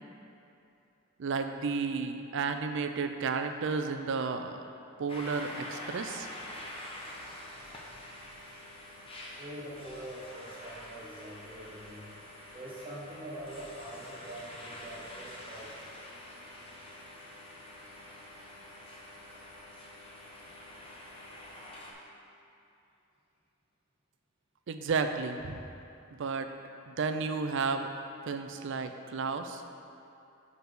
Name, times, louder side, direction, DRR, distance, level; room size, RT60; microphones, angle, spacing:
voice 1, 1.2-4.6 5.0-6.3 24.7-25.6 26.2-26.5 26.9-27.9 28.3-29.6, right 4 dB, 60° right, 7 dB, 0.4 m, -32 dB
sound 1, 5.1-21.9, left 1 dB, 25° left, 0.8 m, -46 dB
voice 2, 9.4-12.1 12.5-15.8, right 1 dB, 25° right, -6 dB, 1.2 m, -44 dB
5.0 x 4.7 x 6.2 m, 2.7 s
head